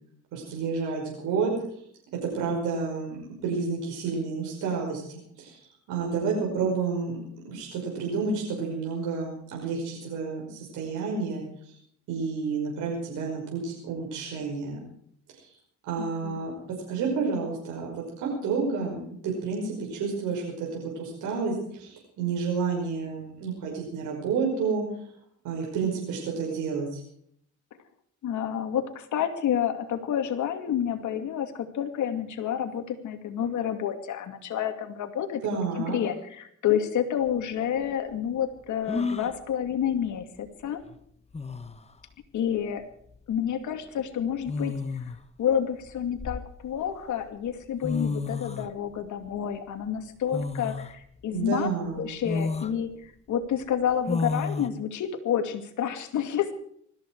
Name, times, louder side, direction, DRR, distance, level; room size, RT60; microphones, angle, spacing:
voice 1, 0.3-1.5 2.2-5.6 5.9-11.7 12.1-14.8 15.4-15.5 15.9-16.5 16.9-24.8 25.4-27.0 35.4-36.0 51.3-52.1, right 5 dB, 90° right, -2 dB, 5.5 m, -30 dB
voice 2, 16.0-16.4 28.2-35.4 35.8-40.8 42.3-42.8 43.3-51.7 51.9-56.5, left 9 dB, 75° left, 7 dB, 2.5 m, -29 dB
sound 1, 37.3-37.4 38.9-39.4 40.9-41.0 41.3-41.8 43.2-43.4 44.5-45.2 45.9-46.9 47.6-47.7 47.8-48.7 50.3-50.9 51.4-51.5 52.2-52.7 54.1-54.7, left 3 dB, 20° left, 1.2 m, -31 dB
20.5 x 14.5 x 4.8 m, 0.67 s
cardioid pair, 90°, 30 cm